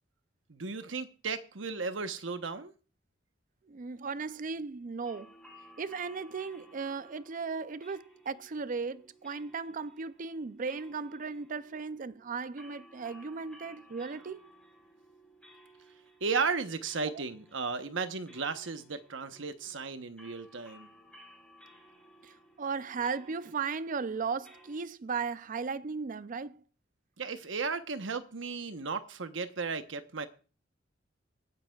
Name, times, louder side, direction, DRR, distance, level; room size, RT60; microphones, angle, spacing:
voice 1, 0.5-2.7 16.2-20.9 27.2-30.3, right 4 dB, 75° right, 1.0 m, -35 dB
voice 2, 3.7-5.3 5.8-14.4 17.0-17.2 22.2-26.6, right 5 dB, 45° right, 0.5 m, -36 dB
sound 1, 5.0-24.9, equal, 5° left, 4.4 m, -58 dB
25.0 x 9.6 x 2.4 m
head